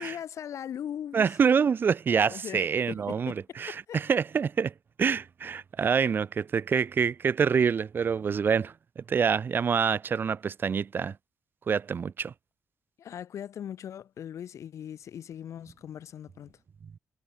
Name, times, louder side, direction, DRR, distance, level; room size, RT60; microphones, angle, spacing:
voice 1, 0.0-1.3 2.3-4.0 13.0-16.5, left 9 dB, 60° left, 1.1 m, -39 dB
voice 2, 1.1-11.1 11.7-12.3, right 6 dB, 40° right, 0.9 m, -26 dB
wide cardioid pair, 160°, 6 cm